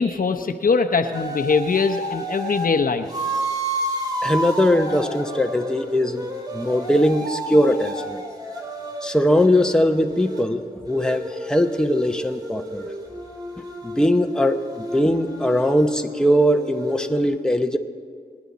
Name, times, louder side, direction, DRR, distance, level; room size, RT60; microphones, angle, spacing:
voice 1, 0.0-3.1, left 4 dB, 65° left, 6 dB, 0.8 m, -21 dB
sound 1, 1.1-2.7 3.1-10.5 10.9-17.2, right 1 dB, 25° right, 2.7 m, -31 dB
voice 2, 4.2-6.3 6.5-8.2 9.0-12.9 13.6-17.8, equal, 5° left, 5 dB, 0.9 m, -20 dB
25.5 x 9.7 x 4.1 m, 2.1 s
cardioid pair, 60°, 16 cm